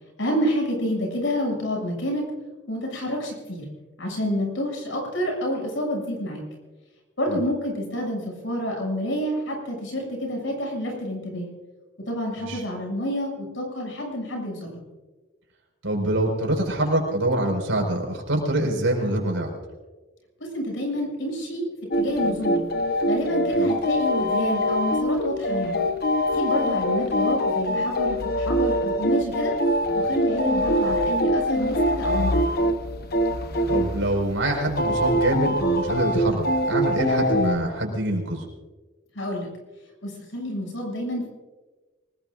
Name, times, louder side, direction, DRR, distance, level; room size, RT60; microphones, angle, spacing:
voice 1, 0.2-2.2 2.7-3.6 4.0-6.4 7.2-11.5 12.1-14.8 20.4-21.7 21.9-22.7 23.0-25.8 26.3-29.5 29.9-32.4 39.2-39.5 40.0-41.3, equal, 75° left, 0 dB, 7.1 m, -28 dB
voice 2, 15.8-19.5 23.5-23.7 33.7-38.4, right 1 dB, 85° right, 2 dB, 5.0 m, -25 dB
sound 1, 21.9-37.5, equal, 50° left, 1.0 m, -24 dB
26.0 x 20.0 x 2.6 m, 1.2 s
head